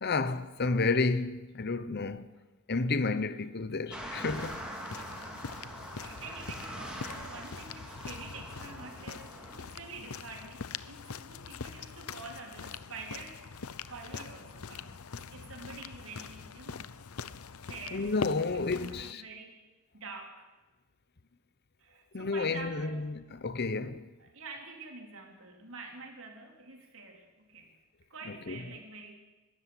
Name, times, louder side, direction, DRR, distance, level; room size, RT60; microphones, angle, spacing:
voice 1, 0.0-2.3 2.7-4.6 17.9-19.2 22.1-24.1 28.3-28.6, left 3 dB, 50° left, 0.9 m, -31 dB
sound 1, 3.9-9.6, right 1 dB, 5° right, 3.2 m, -43 dB
sound 2, 4.2-19.1, left 5 dB, 80° left, 0.8 m, -43 dB
voice 2, 4.9-5.3 5.9-16.9 17.6-18.1 18.7-19.6 19.9-20.5 21.8-23.2 24.2-27.7 28.1-29.2, right 3 dB, 65° right, 3.9 m, -47 dB
22.5 x 13.0 x 10.0 m
head